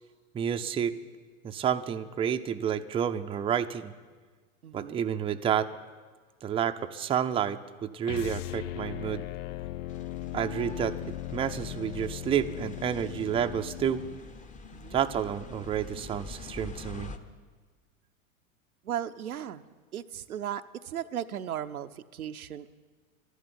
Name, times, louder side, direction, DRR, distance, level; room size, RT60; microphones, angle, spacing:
voice 1, 0.3-0.9 1.4-3.9 4.7-5.7 6.4-9.2 10.3-14.0 14.9-17.1, right 8 dB, 15° right, 7 dB, 0.5 m, -30 dB
voice 2, 4.6-5.1 14.7-15.0 18.8-19.6 19.9-22.8, right 10 dB, 85° right, 9 dB, 0.7 m, -36 dB
sound 1, 8.0-14.2, left 14 dB, 60° left, 0.5 m, -38 dB
sound 2, 9.9-17.2, left 3 dB, 20° left, 0.9 m, -46 dB
12.5 x 11.0 x 9.7 m, 1.5 s
hypercardioid pair, 95°, 42 cm